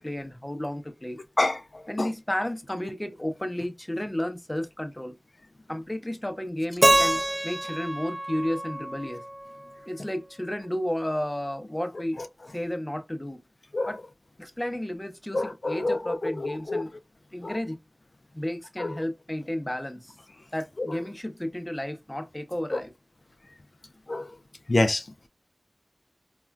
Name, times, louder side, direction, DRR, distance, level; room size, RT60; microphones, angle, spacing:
voice 1, 0.0-1.2 1.9-5.2 5.7-9.2 9.9-12.2 12.5-13.4 13.9-14.0 14.4-16.9 17.3-17.8 18.3-20.1 20.5-22.9, left 1 dB, 20° left, 0.6 m, -32 dB
voice 2, 1.4-2.1 12.2-12.3 13.7-14.0 15.3-16.8 17.4-17.6 18.8-19.0 20.8-21.0 22.7-22.8 24.1-24.3 24.7-25.0, left 2 dB, 70° left, 0.3 m, -27 dB
Keyboard (musical), 6.8-9.8, right 1 dB, 35° right, 0.5 m, -25 dB
3.6 x 2.2 x 2.2 m
wide cardioid pair, 45°, 0 cm